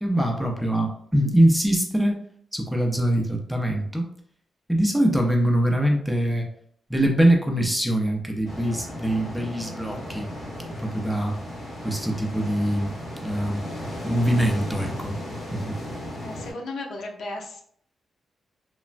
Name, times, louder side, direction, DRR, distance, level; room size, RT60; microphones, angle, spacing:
voice 1, 0.0-2.2 2.5-4.1 4.7-6.5 6.9-10.3 10.7-11.4 11.8-12.9 13.2-13.6 14.0-15.1 15.5-15.8, right 1 dB, ahead, 2 dB, 0.4 m, -23 dB
sound 1, 8.4-16.5, equal, 50° left, 1.3 m, -35 dB
voice 2, 16.2-17.6, left 2 dB, 80° left, 0 dB, 0.5 m, -35 dB
3.1 x 2.0 x 2.4 m, 0.63 s
wide cardioid pair, 130°, 0 cm